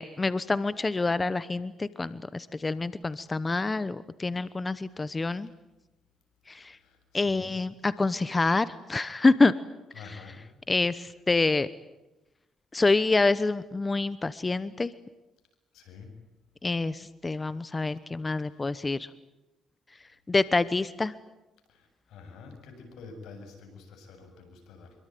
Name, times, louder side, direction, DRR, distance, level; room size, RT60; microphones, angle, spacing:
voice 1, 0.0-5.5 6.5-6.8 7.1-9.5 10.0-10.2 10.7-11.7 12.7-14.9 16.6-19.1 20.3-21.1, left 3 dB, 25° left, 16 dB, 0.9 m, -27 dB
voice 2, 6.8-7.5 9.9-10.4 15.7-16.2 21.7-24.9, left 4 dB, 85° left, 6 dB, 7.6 m, -47 dB
26.0 x 23.5 x 9.4 m, 0.98 s
cardioid pair, 90°, 0 cm